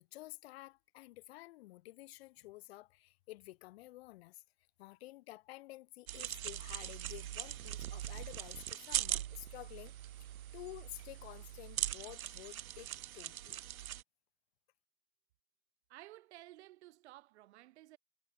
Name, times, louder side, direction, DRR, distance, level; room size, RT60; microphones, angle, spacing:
voice 1, 0.0-4.4 4.8-9.9 10.5-13.6, left 18 dB, 45° left, 2.1 m, -51 dB
sound 1, 6.1-14.0, right 12 dB, 75° right, 0.9 m, -41 dB
voice 2, 15.9-18.0, right 16 dB, 50° right, 3.4 m, -55 dB
hypercardioid pair, 140°, 43 cm